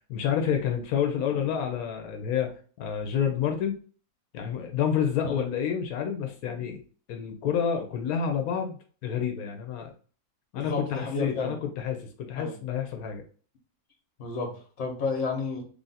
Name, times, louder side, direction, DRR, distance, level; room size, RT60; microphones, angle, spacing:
voice 1, 0.1-3.8 4.3-6.8 7.1-8.8 9.0-9.9 10.5-13.2, left 8 dB, 90° left, 4 dB, 1.1 m, -29 dB
voice 2, 10.5-11.6 12.3-12.6 14.2-15.6, left 4 dB, 60° left, 3 dB, 1.3 m, -31 dB
3.4 x 2.5 x 4.0 m, 0.42 s
omnidirectional pair, 1.5 m